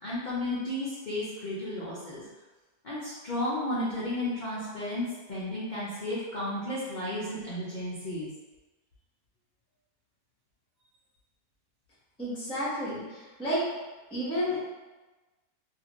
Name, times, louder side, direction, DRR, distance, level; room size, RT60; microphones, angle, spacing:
voice 1, 0.0-2.2 2.8-8.3, left 1 dB, 85° left, -9 dB, 0.4 m, -33 dB
voice 2, 12.2-13.6 14.1-14.6, equal, 5° left, -9 dB, 0.6 m, -31 dB
2.8 x 2.5 x 2.9 m, 1.2 s
omnidirectional pair, 1.8 m